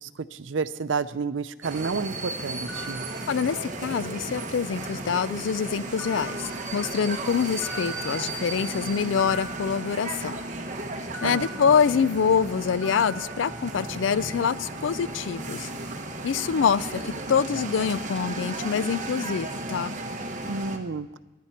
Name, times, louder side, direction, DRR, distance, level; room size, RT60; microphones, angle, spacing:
voice 1, 0.0-3.0 11.2-11.8 20.5-21.1, right 4 dB, 90° right, 14 dB, 0.6 m, -31 dB
sound 1, 1.6-20.8, right 2 dB, 40° right, 1.3 m, -35 dB
sound 2, 2.7-4.0 4.4-5.1 6.0-7.2 7.6-10.5 11.1-12.5 12.8-14.1, right 1 dB, 10° left, 2.2 m, -43 dB
voice 2, 3.3-10.4 11.2-15.7 16.2-19.9, left 6 dB, 85° left, 18 dB, 0.4 m, -25 dB
21.5 x 11.5 x 4.3 m, 1.1 s
head